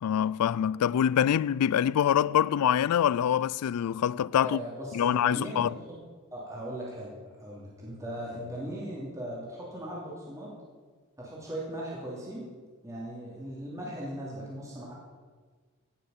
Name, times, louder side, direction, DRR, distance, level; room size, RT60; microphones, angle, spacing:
voice 1, 0.0-4.6 4.9-5.8, left 9 dB, 90° left, 0.3 m, -25 dB
voice 2, 4.4-5.7 6.3-7.1 7.4-10.5 11.2-12.5 12.8-14.9, right 1 dB, 15° right, 2.9 m, -38 dB
16.0 x 6.9 x 7.2 m
head